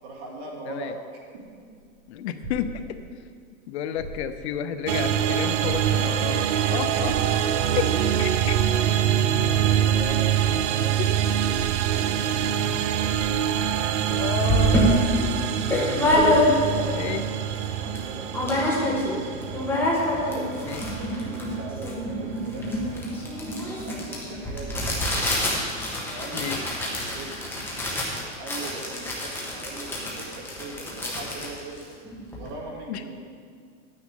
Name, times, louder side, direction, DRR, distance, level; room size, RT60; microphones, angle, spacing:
voice 1, 0.0-1.6 9.4-11.2 11.8-12.4 16.6-17.4 17.8-19.4 20.2-23.2 23.7-25.3 26.1-27.5 28.4-32.0 32.4-33.3, right 3 dB, 45° right, -4 dB, 2.7 m, -40 dB
sound 1, 1.2-3.3 3.9-4.6 5.0-5.1 5.6-6.3 7.0-7.9 8.4-9.2 10.0-10.7 11.5-12.2 12.8-12.9 13.1-13.8 14.6-15.4 15.7-15.8 16.1-16.7 17.4-17.5, right 3 dB, 20° right, 1.3 m, -40 dB
voice 2, 2.1-3.0 3.7-6.4 6.7-7.4 7.8-7.9 8.2-8.3 14.1-15.1 16.5-16.7 16.9-17.2 20.6-20.8 26.3-26.6 32.9-33.0, left 10 dB, 60° left, 10 dB, 0.6 m, -31 dB
sound 2, 4.9-24.0, right 9 dB, 65° right, 0.6 m, -25 dB
sound 3, 14.0-14.1 14.5-16.9 17.3-17.4 17.5-18.0 18.3-19.1 19.4-32.5, left 1 dB, 5° left, 1.4 m, -26 dB
11.0 x 9.2 x 3.7 m, 2.1 s
supercardioid pair, 155°, 38 cm